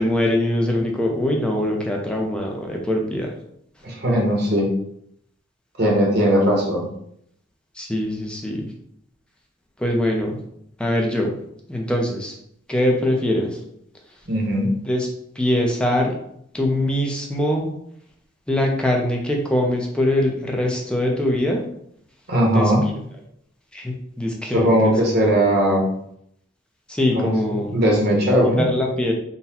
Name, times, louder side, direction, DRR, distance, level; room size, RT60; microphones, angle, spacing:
voice 1, 0.0-3.3 7.8-8.6 9.8-10.4 10.8-11.3 11.7-12.3 12.7-13.6 14.9-15.1 15.4-16.1 16.5-17.7 18.5-21.6 22.5-22.9 23.7-24.9 26.9-27.8 28.6-29.1, left 1 dB, 5° left, 0 dB, 0.6 m, -22 dB
voice 2, 3.8-4.7 5.8-6.9 14.3-14.7 22.3-22.9 24.5-25.8 27.1-27.3 27.7-28.7, equal, 50° right, -1 dB, 1.0 m, -18 dB
3.9 x 2.2 x 4.2 m, 0.72 s
head